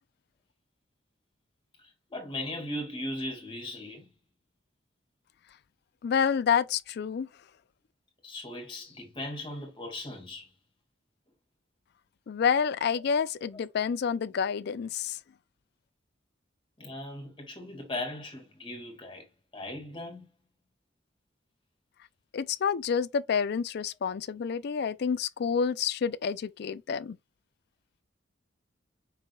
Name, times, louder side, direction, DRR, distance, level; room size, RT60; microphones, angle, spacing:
voice 1, 1.8-4.1 8.2-10.5 16.8-19.3 19.5-20.3, left 1 dB, 25° left, 2.1 m, -38 dB
voice 2, 6.0-7.3 12.3-15.2 22.3-27.2, left 6 dB, 60° left, 0.4 m, -28 dB
5.6 x 3.8 x 2.3 m
head